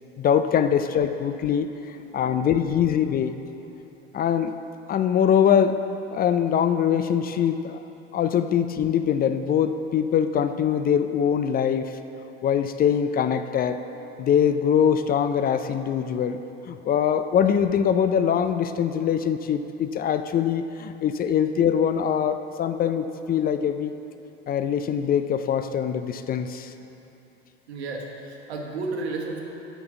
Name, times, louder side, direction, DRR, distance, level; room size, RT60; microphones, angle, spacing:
voice 1, 0.2-1.7 2.1-3.3 4.1-4.5 4.9-5.8 6.1-7.8 8.1-11.9 12.4-13.8 14.2-16.4 16.7-23.9 24.5-26.7, left 8 dB, 30° left, 9 dB, 0.3 m, -23 dB
voice 2, 1.9-2.5 27.7-29.4, right 3 dB, 85° right, 0 dB, 1.1 m, -33 dB
6.0 x 5.9 x 7.0 m, 2.9 s
hypercardioid pair, 75°, 32 cm